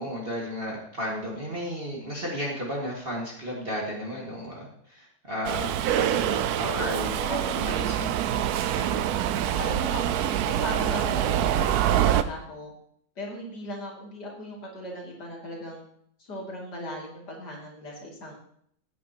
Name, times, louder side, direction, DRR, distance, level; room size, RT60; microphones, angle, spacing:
voice 1, 0.0-9.2, equal, 30° right, -3 dB, 2.0 m, -34 dB
Subway metro underground, 5.4-12.2, right 10 dB, 80° right, 0.8 m, -25 dB
voice 2, 7.2-7.6 9.6-12.7 13.2-15.8 16.2-18.3, equal, 55° left, -2 dB, 3.2 m, -37 dB
14.5 x 9.2 x 2.9 m, 0.66 s
omnidirectional pair, 2.2 m